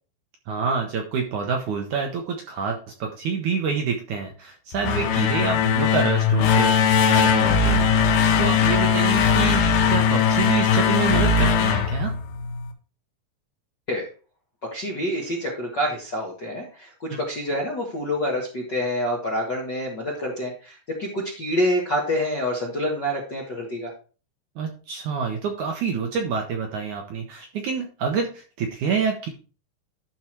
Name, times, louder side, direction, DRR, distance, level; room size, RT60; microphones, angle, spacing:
voice 1, 0.5-12.1 24.6-29.3, right 5 dB, 70° right, 3 dB, 2.0 m, -27 dB
sound 1, 4.7-12.7, left 6 dB, 75° left, 2.8 m, -20 dB
voice 2, 14.7-23.9, equal, 50° left, -3 dB, 1.4 m, -27 dB
12.0 x 4.7 x 4.5 m, 0.37 s
omnidirectional pair, 4.5 m